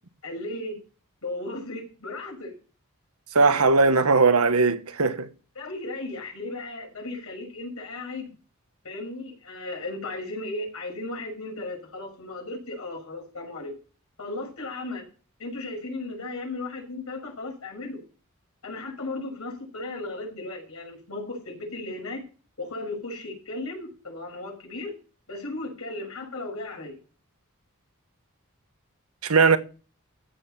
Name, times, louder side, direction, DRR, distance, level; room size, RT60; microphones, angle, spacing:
voice 1, 0.2-0.8 1.2-2.5 3.5-3.6 5.5-8.3 8.8-13.7 14.2-15.0 15.4-18.0 18.6-22.2 22.6-24.9 25.3-27.0, left 2 dB, 85° left, 6.5 m, -35 dB
voice 2, 3.3-5.3 29.2-29.6, right 4 dB, 85° right, 1.3 m, -19 dB
15.5 x 7.0 x 5.7 m
head